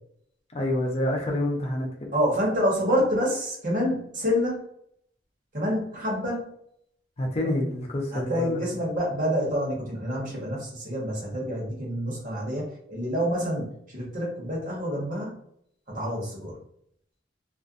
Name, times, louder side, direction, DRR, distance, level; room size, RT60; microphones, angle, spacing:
voice 1, 0.5-2.1 7.2-8.6, left 1 dB, 35° left, 0 dB, 0.5 m, -28 dB
voice 2, 2.1-4.6 5.5-6.5 8.1-15.4 15.9-16.6, equal, 45° right, -4 dB, 1.0 m, -27 dB
2.5 x 2.2 x 2.5 m, 0.71 s
head